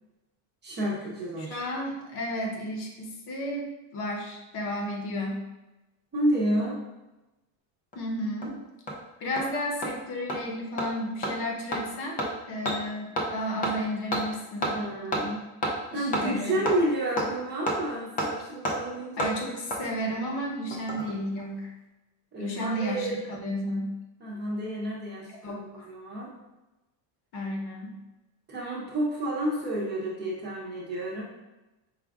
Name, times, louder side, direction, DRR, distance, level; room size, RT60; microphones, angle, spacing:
voice 1, 0.6-1.6 6.1-6.8 14.6-15.5 15.9-19.3 22.3-23.1 24.2-26.4 28.5-31.2, right 1 dB, 25° right, -5 dB, 0.7 m, -30 dB
voice 2, 1.5-5.4 7.9-8.5 9.2-12.2 12.5-14.7 15.9-16.6 19.2-21.7 22.4-23.9 25.4-25.9 27.3-28.0, equal, 55° left, 0 dB, 0.9 m, -33 dB
Hammer, 7.9-8.0 8.4-8.5 8.9-9.0 9.4-9.5 9.8-9.9 10.3-10.4 10.8-10.9 11.2-11.3 11.7-11.8 12.2-12.3 12.6-12.8 13.2-13.3 13.6-13.7 14.1-14.2 14.6-14.7 15.1-15.2 15.6-15.7 16.1-16.2 16.6-16.8 17.2-17.3 17.7-17.8 18.2-18.3 18.6-18.8 19.2-19.3 19.7-19.8 20.7-21.1 21.4-21.5, equal, 20° left, 0.3 m, -28 dB
4.9 x 2.4 x 3.5 m, 1.0 s
cardioid pair, 175°, 46 cm